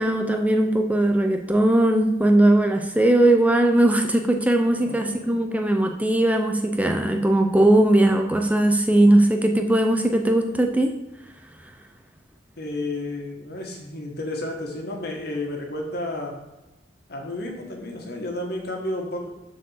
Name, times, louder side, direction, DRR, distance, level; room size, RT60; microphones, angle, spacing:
voice 1, 0.0-11.0, right 1 dB, 10° right, 4 dB, 0.6 m, -19 dB
voice 2, 4.7-5.5 12.6-16.4 17.1-19.3, left 1 dB, 60° left, 1 dB, 1.8 m, -32 dB
7.2 x 4.7 x 6.6 m, 1.0 s
head